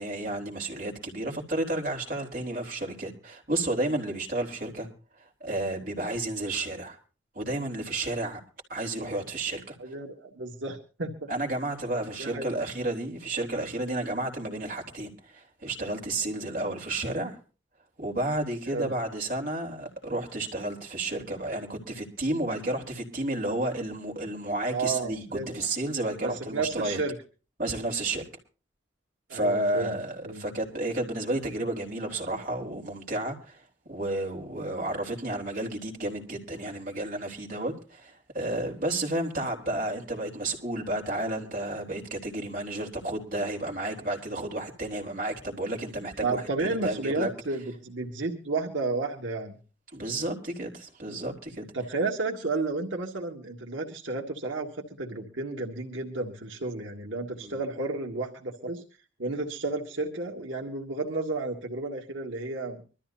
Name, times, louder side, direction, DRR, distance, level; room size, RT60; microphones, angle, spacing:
voice 1, 0.0-4.9 5.2-7.0 7.4-8.4 8.7-9.8 11.3-17.4 18.0-27.0 27.6-28.3 29.3-47.3 49.9-51.6 57.4-57.6, right 2 dB, 45° right, 3.6 m, -32 dB
voice 2, 9.8-11.3 12.2-12.5 18.7-18.9 24.7-25.6 26.2-27.2 29.3-30.4 46.2-49.6 51.7-58.8 59.2-62.8, right 3 dB, 85° right, 1.9 m, -32 dB
24.5 x 13.5 x 2.7 m
head